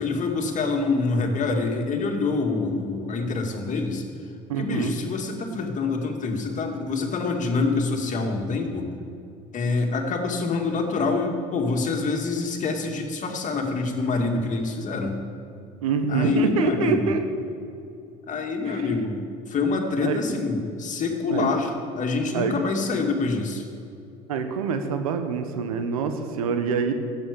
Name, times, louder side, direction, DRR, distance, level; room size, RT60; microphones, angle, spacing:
voice 1, 0.0-4.0 4.6-8.9 9.5-15.2 16.1-17.1 18.3-19.2 19.5-23.6, left 3 dB, 45° left, 3 dB, 2.4 m, -26 dB
voice 2, 4.5-4.9 15.8-17.2 18.7-18.9 20.0-20.2 21.3-21.5 22.3-22.5 24.3-26.9, right 5 dB, 90° right, 7 dB, 1.3 m, -25 dB
12.5 x 8.5 x 8.4 m, 2.6 s
hypercardioid pair, 75°, 18 cm